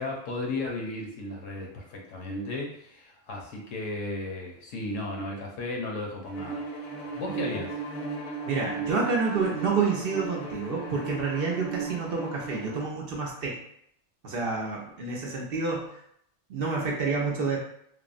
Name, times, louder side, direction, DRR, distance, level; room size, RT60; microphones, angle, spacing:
voice 1, 0.0-6.6 7.1-7.7, left 2 dB, 80° left, -1 dB, 1.1 m, -34 dB
Bowed string instrument, 6.3-12.9, right 4 dB, 55° left, 0.7 m, -36 dB
voice 2, 8.5-13.6 14.2-16.0 16.5-17.6, right 4 dB, 60° right, -3 dB, 0.7 m, -28 dB
3.4 x 2.0 x 2.4 m, 0.72 s
omnidirectional pair, 1.3 m